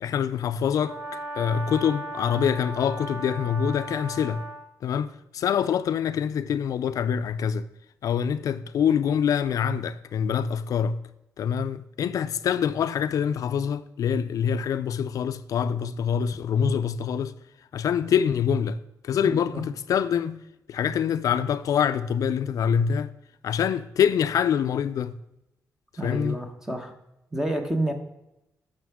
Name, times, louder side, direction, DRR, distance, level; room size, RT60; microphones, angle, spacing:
voice 1, 0.0-4.4 4.8-7.7 8.0-11.0 11.4-17.3 17.7-20.4 20.7-23.1 23.4-25.1 26.0-26.4, left 8 dB, 70° left, 0.3 m, -25 dB
Brass instrument, 0.8-4.7, right 1 dB, 40° right, 1.4 m, -36 dB
voice 2, 19.2-19.6 26.0-26.9 27.3-27.9, right 1 dB, 5° right, 1.0 m, -29 dB
12.5 x 6.6 x 3.5 m
wide cardioid pair, 155°, 6 cm